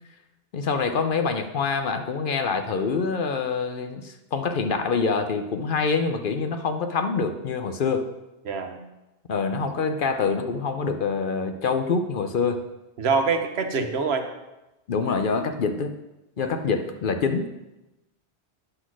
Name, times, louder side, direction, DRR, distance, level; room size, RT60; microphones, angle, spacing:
voice 1, 0.5-8.1 9.3-12.6 14.9-16.0 16.4-17.5, left 5 dB, 60° left, 7 dB, 0.7 m, -25 dB
voice 2, 8.4-8.8 13.0-14.3 16.4-16.6, right 4 dB, 70° right, 6 dB, 1.1 m, -25 dB
10.0 x 4.1 x 6.1 m, 0.99 s
omnidirectional pair, 1.1 m